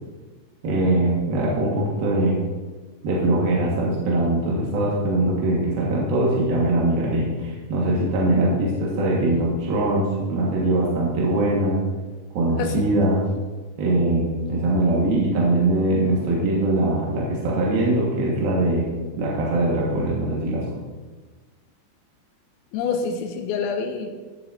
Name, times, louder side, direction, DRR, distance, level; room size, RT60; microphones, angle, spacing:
voice 1, 0.6-2.4 3.0-11.8 12.3-13.2 13.8-18.9 19.1-20.6, right 1 dB, 60° right, -5 dB, 3.0 m, -22 dB
voice 2, 22.7-24.1, left 5 dB, 90° left, 4 dB, 3.4 m, -26 dB
16.0 x 8.3 x 2.8 m, 1.3 s
omnidirectional pair, 5.9 m